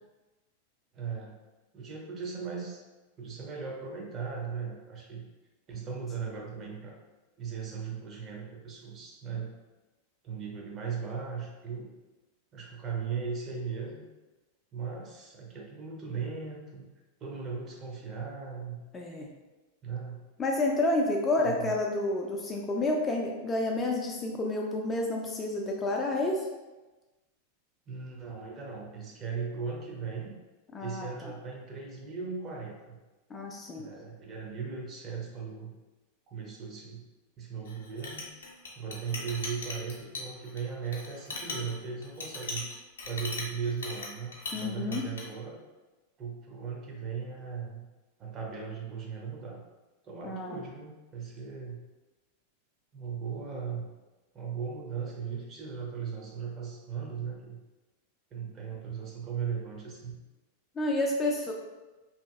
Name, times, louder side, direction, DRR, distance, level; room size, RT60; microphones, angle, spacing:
voice 1, 0.9-1.4 1.7-2.8 3.2-5.2 5.7-7.0 7.4-9.6 10.2-11.9 12.5-14.0 14.7-16.8 17.2-18.8 19.8-20.2 21.4-21.7 27.9-30.4 30.8-33.0 33.8-35.7 36.3-37.0 37.4-38.2 38.8-42.7 43.1-45.6 46.2-47.9 48.2-49.6 50.0-51.8 52.9-53.9 54.3-57.6 58.3-60.1, right 6 dB, 30° right, -1 dB, 0.6 m, -37 dB
voice 2, 18.9-19.3 20.4-26.5 30.7-31.3 33.3-33.9 44.5-45.0 50.2-50.6 60.8-61.5, left 2 dB, 20° left, 0 dB, 0.3 m, -30 dB
Chink clink, 37.7-44.7 44.9-45.3, left 3 dB, 65° left, 0.5 m, -39 dB
2.7 x 2.5 x 2.4 m, 1.1 s
figure-of-eight pair, 90°, 0 cm